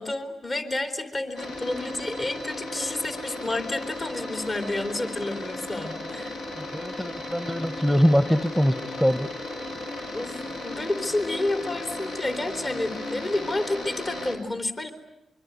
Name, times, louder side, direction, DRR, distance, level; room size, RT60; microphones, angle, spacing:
voice 1, 0.0-6.4 10.1-14.9, left 2 dB, 40° left, 6 dB, 3.5 m, -30 dB
sound 1, 1.4-14.4, left 1 dB, 85° left, 4.6 m, -35 dB
voice 2, 6.6-9.3, equal, 5° left, 13 dB, 1.1 m, -23 dB
24.5 x 24.0 x 9.5 m, 0.87 s
supercardioid pair, 45°, 0 cm